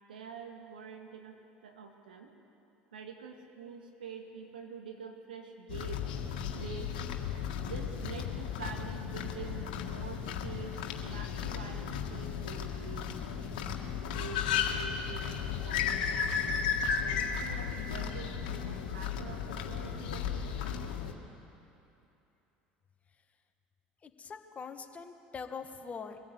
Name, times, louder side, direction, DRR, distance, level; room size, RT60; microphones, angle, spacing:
voice 1, 0.1-2.3 2.9-6.1 6.4-7.0 7.6-13.1 14.1-16.6 17.0-20.9, right 5 dB, 85° right, 3 dB, 2.2 m, -46 dB
sound 1, 5.7-21.1, left 7 dB, 75° left, 1.8 m, -35 dB
voice 2, 24.0-26.2, left 5 dB, 30° left, 6 dB, 1.7 m, -43 dB
23.5 x 15.0 x 8.3 m, 2.8 s
hypercardioid pair, 75°, 5 cm